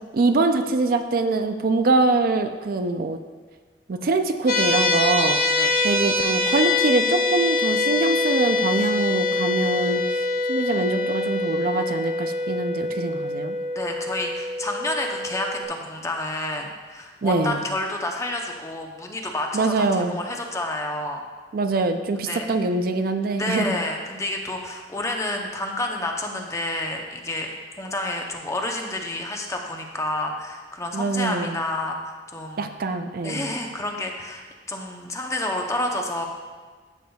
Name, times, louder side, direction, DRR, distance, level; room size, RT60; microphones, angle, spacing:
voice 1, 0.1-3.2 3.9-5.4 5.8-10.0 10.5-13.6 17.2-17.6 19.5-20.2 21.5-23.8 30.9-31.6 32.6-33.5, right 3 dB, 55° right, 7 dB, 0.4 m, -23 dB
sound 1, 4.5-15.6, left 3 dB, 55° left, 1.0 m, -24 dB
voice 2, 13.7-21.2 22.3-22.5 23.4-27.5 27.8-32.7 33.2-36.3, left 1 dB, 15° left, 2 dB, 0.7 m, -29 dB
11.5 x 6.8 x 2.3 m, 1.4 s
head